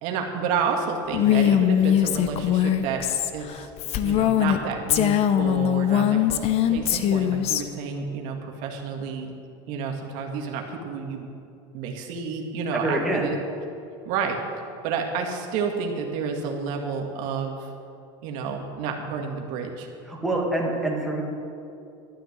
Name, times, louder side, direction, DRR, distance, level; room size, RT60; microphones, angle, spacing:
voice 1, 0.0-3.0 3.3-3.7 4.0-9.3 9.7-11.3 11.7-13.4 14.1-14.4 14.8-17.7 18.2-19.9, right 5 dB, 65° right, 2 dB, 1.9 m, -30 dB
Female speech woman speaking, 1.1-4.6 4.9-7.6, left 10 dB, 45° left, 0.8 m, -21 dB
voice 2, 12.7-13.3 20.0-21.2, right 2 dB, ahead, -3 dB, 2.2 m, -26 dB
12.5 x 9.1 x 8.0 m, 2.6 s
supercardioid pair, 140°, 15 cm